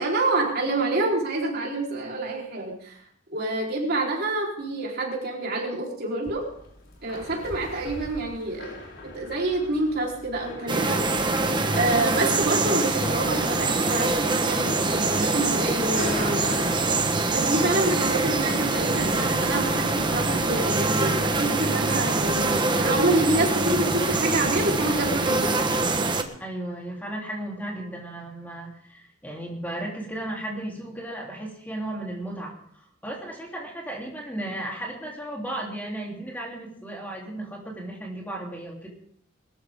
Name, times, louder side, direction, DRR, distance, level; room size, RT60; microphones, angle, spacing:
voice 1, 0.0-3.0 3.3-6.5 7.0-8.7 9.0-11.0 11.7-16.8 17.3-25.6, right 2 dB, 55° right, -2 dB, 4.1 m, -27 dB
sound 1, 6.2-23.4, left 2 dB, 70° left, 4.7 m, -42 dB
sound 2, 10.7-26.2, right 3 dB, 25° right, 1.3 m, -24 dB
voice 2, 26.4-38.9, right 1 dB, 10° left, -2 dB, 3.4 m, -35 dB
21.5 x 14.0 x 3.7 m, 0.65 s
head